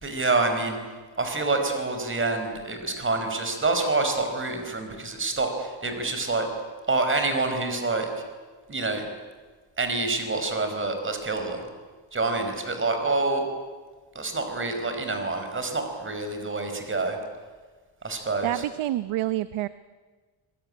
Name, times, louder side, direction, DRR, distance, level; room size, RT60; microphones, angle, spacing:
voice 1, 0.0-0.8 1.2-6.5 6.9-8.1 8.7-9.0 9.8-11.6 12.1-13.5 14.1-17.2 18.0-18.6, right 3 dB, 25° right, 6 dB, 4.9 m, -27 dB
voice 2, 18.4-19.7, right 15 dB, 90° right, 14 dB, 0.9 m, -27 dB
25.0 x 22.5 x 10.0 m, 1.4 s
cardioid pair, 140°, 48 cm